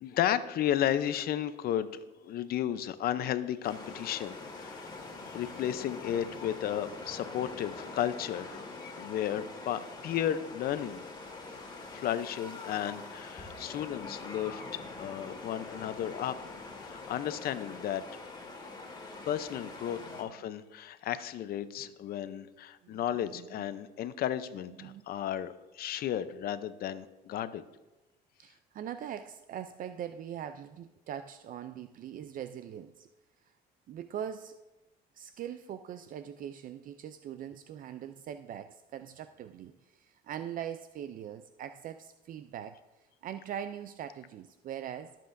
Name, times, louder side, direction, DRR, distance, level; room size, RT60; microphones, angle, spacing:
voice 1, 0.0-4.9 5.3-8.6 9.0-11.0 11.9-16.3 16.8-18.0 19.3-27.6, left 11 dB, 65° left, 13 dB, 0.7 m, -33 dB
sound 1, 3.6-20.2, left 3 dB, 25° left, 2.2 m, -44 dB
voice 2, 28.4-33.1 33.4-33.5 33.9-34.6 35.1-42.8 43.2-45.1, right 9 dB, 55° right, 10 dB, 0.4 m, -42 dB
21.0 x 7.6 x 2.6 m, 1.0 s
cardioid pair, 110°, 17 cm